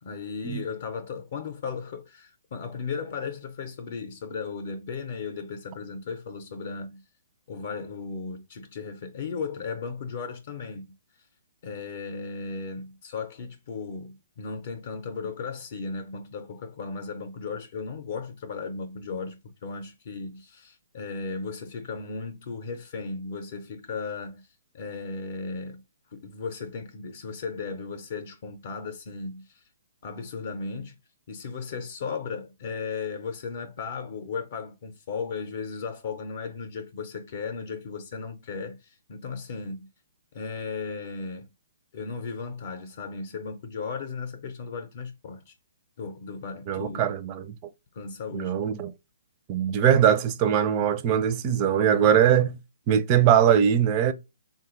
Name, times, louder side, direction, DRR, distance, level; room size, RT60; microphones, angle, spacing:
voice 1, 0.0-7.0 7.5-11.0 11.6-24.5 24.7-25.8 26.1-29.6 30.0-31.0 31.3-39.9 40.3-41.5 41.9-45.5 46.0-47.2 47.9-48.6, left 5 dB, 55° left, 0.6 m, -36 dB
voice 2, 46.7-47.6 48.3-48.9 49.5-52.6 52.9-54.1, right 9 dB, 30° right, 0.4 m, -21 dB
3.3 x 2.2 x 3.0 m
hypercardioid pair, 145°, 0 cm